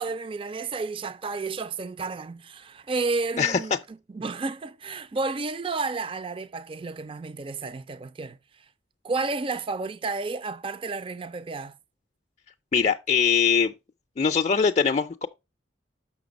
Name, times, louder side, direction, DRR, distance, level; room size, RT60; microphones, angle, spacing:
voice 1, 0.0-8.6 9.0-11.8, right 3 dB, 30° right, 0.4 m, -31 dB
voice 2, 12.7-13.7 14.2-15.3, left 6 dB, 40° left, 0.4 m, -22 dB
6.5 x 5.9 x 5.0 m
head